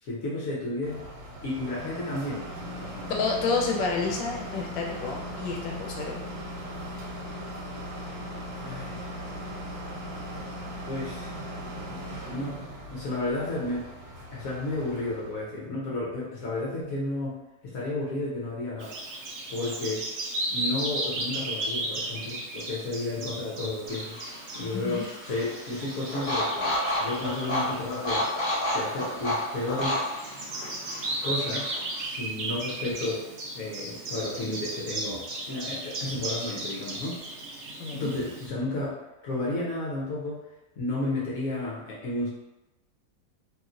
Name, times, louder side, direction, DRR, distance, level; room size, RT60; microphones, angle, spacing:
voice 1, 0.0-1.1 1.4-2.5 2.8-3.1 8.6-9.1 10.9-13.8 14.3-18.9 19.5-20.0 20.5-24.2 24.5-26.7 27.0-28.5 28.7-30.6 31.1-33.2 33.5-37.2 37.9-39.0 39.2-40.4 40.8-42.3, left 2 dB, 65° left, -5 dB, 0.9 m, -32 dB
sound 1, 0.8-15.5, equal, 65° right, 1.1 m, -38 dB
voice 2, 3.1-6.2 24.7-25.0 37.8-38.1, left 4 dB, 85° left, -1 dB, 1.3 m, -29 dB
Bird vocalization bird call bird song, 18.8-38.5, right 1 dB, 85° right, 0.6 m, -36 dB
sound 2, 23.9-32.0, left 1 dB, 20° left, 1.0 m, -31 dB
3.0 x 2.8 x 2.4 m, 1.0 s
omnidirectional pair, 2.0 m